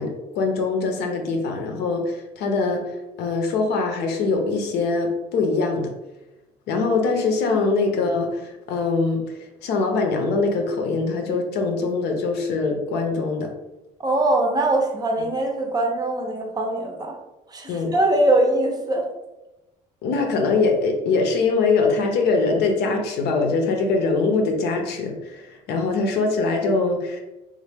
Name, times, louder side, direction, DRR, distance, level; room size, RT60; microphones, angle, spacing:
voice 1, 0.0-5.9 6.7-9.2 9.6-13.5 17.7-17.9 20.0-27.2, left 3 dB, 80° left, 3 dB, 0.6 m, -23 dB
voice 2, 14.0-17.2 17.5-19.1, right 1 dB, 25° right, 3 dB, 0.5 m, -22 dB
3.1 x 2.1 x 3.4 m, 1.0 s
cardioid pair, 110°, 17 cm